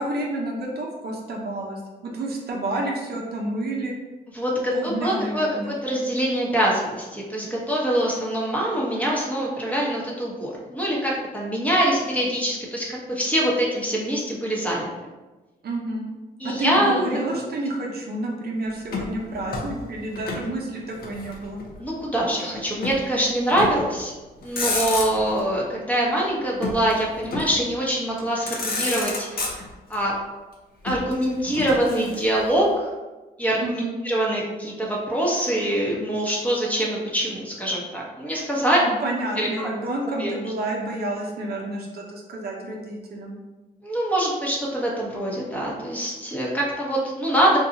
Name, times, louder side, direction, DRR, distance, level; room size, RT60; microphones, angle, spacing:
voice 1, 0.0-3.9 4.7-5.7 15.6-16.0 16.4-21.6 33.6-34.0 38.8-43.4, right 1 dB, 60° right, -1 dB, 0.7 m, -29 dB
voice 2, 4.3-14.9 16.4-17.4 21.8-24.1 24.4-29.6 29.9-30.1 30.8-32.9 33.4-38.8 39.4-39.7 40.2-40.3 43.8-47.6, right 1 dB, 10° left, -4 dB, 0.9 m, -24 dB
Motor vehicle (road), 18.9-20.5 20.8-21.8 22.8-23.0 23.5-23.9 24.4-25.4 26.6-27.7 28.2-28.3 28.5-30.0 30.8-32.5, left 3 dB, 55° left, 0.8 m, -30 dB
2.7 x 2.3 x 3.9 m, 1.2 s
cardioid pair, 80°, 18 cm